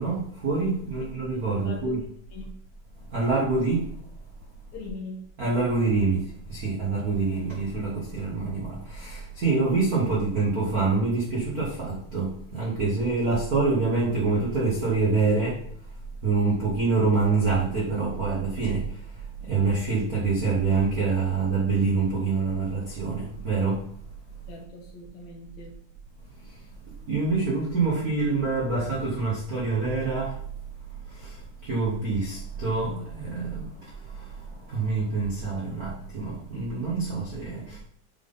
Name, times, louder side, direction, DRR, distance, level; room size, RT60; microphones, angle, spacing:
voice 1, 0.0-2.0 3.1-3.9 5.4-6.2 6.5-15.6 16.2-18.8 19.5-23.8 27.1-30.3 31.2-31.3 31.6-33.7 34.7-37.8, right 4 dB, 80° right, -5 dB, 0.8 m, -26 dB
voice 2, 1.5-2.0 2.3-2.5 4.7-5.2 24.5-25.7, left 3 dB, 60° left, 0 dB, 2.5 m, -41 dB
9.0 x 3.8 x 3.9 m, 0.62 s
omnidirectional pair, 3.9 m